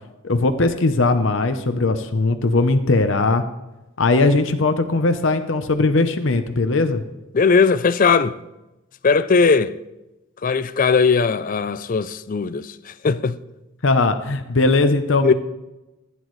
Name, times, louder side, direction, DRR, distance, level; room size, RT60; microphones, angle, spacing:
voice 1, 0.2-3.4 4.0-7.0 13.8-15.3, left 3 dB, 65° left, 0.8 m, -19 dB
voice 2, 7.3-8.4 9.0-9.7 10.4-13.4 15.2-15.3, left 5 dB, 40° left, 0.4 m, -18 dB
15.5 x 10.0 x 3.2 m
head